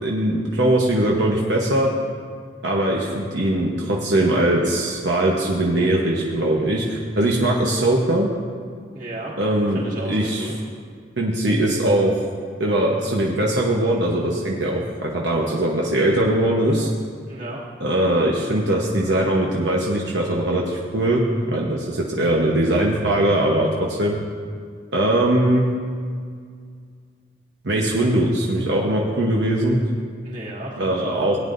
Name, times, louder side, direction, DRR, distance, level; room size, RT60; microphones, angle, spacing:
voice 1, 0.0-1.9 2.6-8.3 9.4-10.5 11.2-12.2 12.6-16.9 17.8-21.2 21.5-24.2 24.9-25.7 27.6-29.8 30.8-31.4, right 1 dB, 75° right, -2 dB, 1.0 m, -21 dB
voice 2, 8.9-9.3 9.7-10.5 17.3-17.6 22.2-22.5 30.2-31.3, right 1 dB, 45° right, -5 dB, 2.4 m, -34 dB
18.5 x 9.5 x 2.6 m, 2.1 s
head